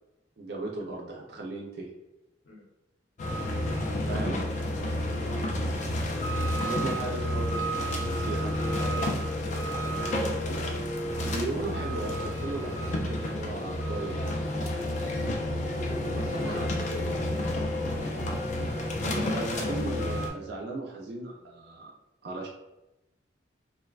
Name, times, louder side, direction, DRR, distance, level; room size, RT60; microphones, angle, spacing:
voice 1, 0.4-1.9 4.0-4.4 6.6-8.5 11.2-14.4 16.1-16.8 19.0-21.9 22.2-22.5, right 2 dB, 55° right, -1 dB, 0.4 m, -36 dB
sound 1, 3.2-20.3, left 1 dB, 40° left, 0.3 m, -30 dB
voice 2, 4.0-5.7 8.7-10.3 11.0-11.5 14.7-18.3, left 2 dB, 85° left, -3 dB, 0.8 m, -44 dB
2.5 x 2.1 x 2.3 m, 0.95 s
head